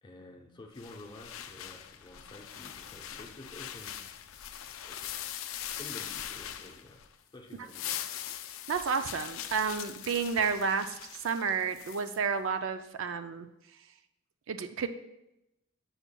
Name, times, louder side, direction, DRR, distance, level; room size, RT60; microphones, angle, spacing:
voice 1, 0.0-4.1 4.8-5.1 5.5-7.1 7.3-7.9, left 2 dB, 20° left, 1 dB, 0.7 m, -50 dB
sound 1, 0.8-7.1 7.5-12.2, left 10 dB, 75° left, 0.4 m, -42 dB
voice 2, 8.7-13.5 14.5-14.9, right 5 dB, 65° right, 9 dB, 0.4 m, -31 dB
7.0 x 7.0 x 2.2 m, 0.89 s
head